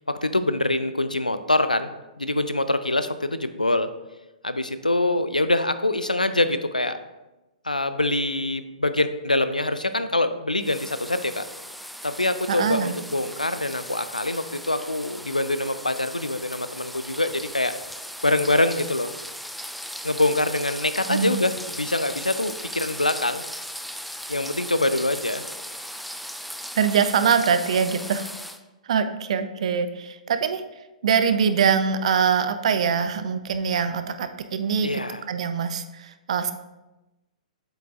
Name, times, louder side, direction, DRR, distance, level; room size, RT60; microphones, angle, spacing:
voice 1, 0.0-1.9 2.2-3.9 4.4-7.0 7.6-11.4 12.0-17.7 18.2-19.1 20.0-23.4 24.3-25.4 34.8-35.2, left 2 dB, 90° left, 11 dB, 0.4 m, -24 dB
sound 1, 10.6-28.6, equal, ahead, 0.3 m, -37 dB
voice 2, 12.5-12.9 21.1-21.4 26.8-28.3 28.9-30.6 31.0-35.0 35.3-36.5, right 6 dB, 55° right, 10 dB, 0.5 m, -23 dB
7.8 x 6.8 x 2.4 m, 1.0 s
figure-of-eight pair, 115°, 4 cm